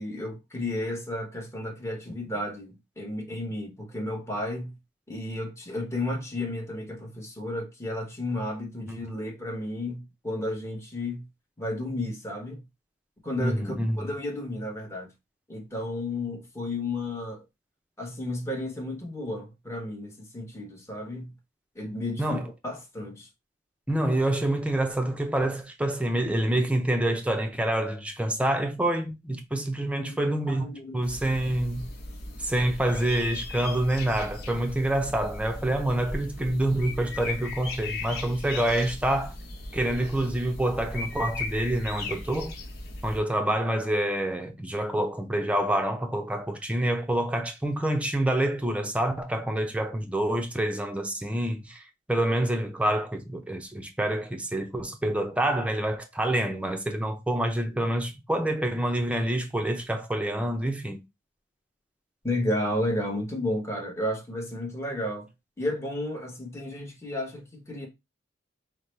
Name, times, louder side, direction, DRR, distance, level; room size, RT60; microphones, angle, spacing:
voice 1, 0.0-4.7 5.1-11.3 11.6-12.6 13.2-15.1 15.5-17.4 18.0-21.3 21.7-23.3 30.0-31.0 62.2-65.3 65.6-67.9, left 1 dB, 15° left, 1.1 m, -32 dB
voice 2, 13.4-14.1 22.2-22.5 23.9-31.9 32.4-39.3 39.7-42.5 43.0-51.8 52.1-61.0, right 1 dB, 5° right, 0.6 m, -27 dB
sound 1, 31.0-43.2, left 2 dB, 55° left, 1.1 m, -37 dB
5.6 x 2.1 x 3.2 m
head